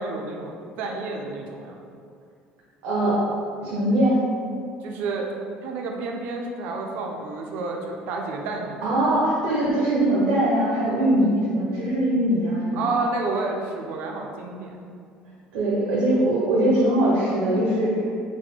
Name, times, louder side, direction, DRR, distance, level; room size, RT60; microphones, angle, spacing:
voice 1, 0.0-1.8 4.8-5.3 5.6-8.8 12.8-14.8, right 3 dB, 60° right, 1 dB, 0.5 m, -30 dB
voice 2, 2.8-3.2 3.6-4.2 8.8-12.8 15.5-18.0, right 1 dB, 85° right, -6 dB, 0.9 m, -21 dB
4.1 x 2.1 x 4.4 m, 2.3 s
cardioid pair, 175°, 3 cm